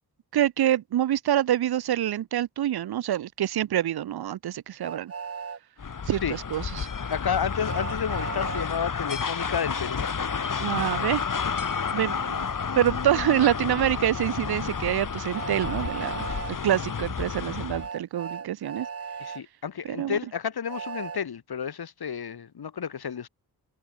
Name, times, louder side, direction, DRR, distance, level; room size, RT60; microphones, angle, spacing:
voice 1, 0.3-5.1 6.1-6.9 10.6-11.2 11.9-12.4 12.8-16.3 16.6-18.9 19.9-20.2, right 11 dB, 75° right, 0.6 m, -26 dB
Train, 4.8-5.6 7.6-8.7 10.7-11.1 13.1-13.3 15.3-16.5 17.8-19.4 20.7-21.2, right 6 dB, 40° right, 1.0 m, -36 dB
sound 1, 5.8-17.9, left 6 dB, 55° left, 4.8 m, -31 dB
voice 2, 7.1-10.0 19.2-23.3, left 7 dB, 75° left, 3.3 m, -31 dB
wide cardioid pair, 150°, 38 cm